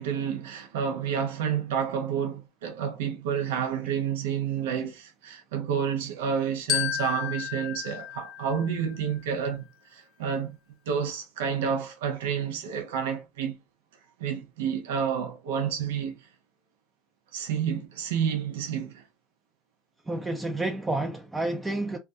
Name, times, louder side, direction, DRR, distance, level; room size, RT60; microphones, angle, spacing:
voice 1, 0.0-10.6 10.9-13.6 14.2-16.2 17.3-19.0, right 7 dB, 80° right, 0.5 m, -29 dB
Glockenspiel, 6.7-9.2, left 12 dB, 50° left, 0.6 m, -32 dB
voice 2, 20.1-22.0, right 2 dB, 15° right, 0.4 m, -29 dB
2.2 x 2.2 x 2.6 m
hypercardioid pair, 85°, 0 cm